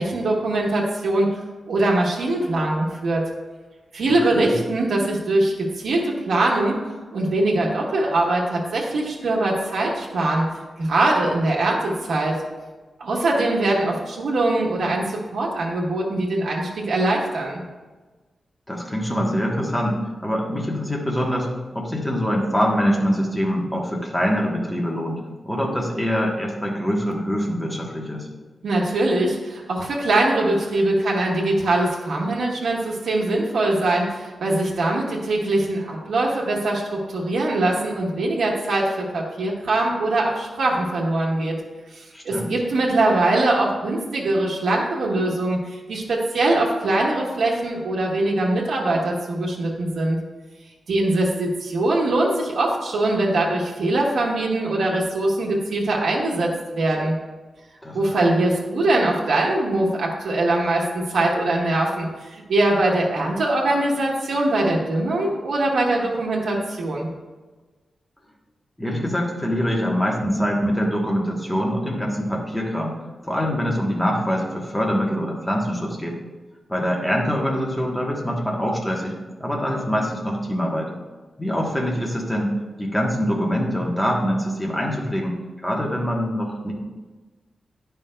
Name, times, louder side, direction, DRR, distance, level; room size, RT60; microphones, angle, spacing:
voice 1, 0.0-1.3 1.7-3.2 3.9-6.8 7.1-10.5 10.8-12.3 13.0-17.6 28.6-41.6 42.2-50.2 50.9-57.2 57.9-67.1, right 2 dB, 90° right, -3 dB, 1.3 m, -22 dB
voice 2, 18.7-28.3 42.1-42.5 57.8-58.3 68.8-72.9 73.3-76.2 76.7-80.9 81.4-86.7, equal, 5° left, -1 dB, 1.1 m, -24 dB
9.9 x 5.6 x 2.2 m, 1.3 s
wide cardioid pair, 155°, 0 cm